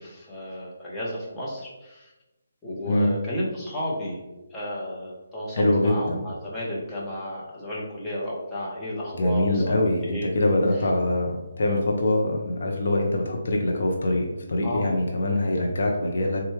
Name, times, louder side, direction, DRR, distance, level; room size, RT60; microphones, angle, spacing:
voice 1, 0.0-2.1 2.6-4.2 4.5-10.3 14.6-15.0, left 1 dB, 15° left, -7 dB, 1.0 m, -33 dB
voice 2, 5.5-6.2 9.2-16.4, left 1 dB, 60° left, 0 dB, 0.6 m, -24 dB
4.1 x 2.3 x 3.1 m, 1.0 s
figure-of-eight pair, 150°, 0 cm